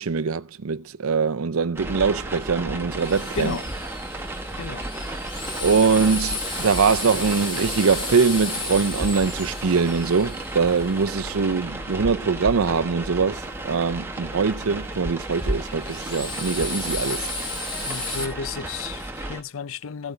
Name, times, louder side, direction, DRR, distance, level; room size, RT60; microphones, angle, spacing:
voice 1, 0.0-3.6 5.6-17.3, right 5 dB, 85° right, 0.6 m, -23 dB
sound 1, 1.8-19.4, right 1 dB, 10° right, 1.1 m, -33 dB
Drill, 2.9-11.8 15.2-18.2, left 3 dB, 25° left, 2.2 m, -34 dB
voice 2, 3.3-3.6 4.6-4.9 17.8-20.1, left 5 dB, 75° left, 0.5 m, -32 dB
Ambient Neuro bass beat, 4.6-18.8, right 1 dB, 5° left, 1.7 m, -52 dB
15.0 x 8.0 x 3.3 m
head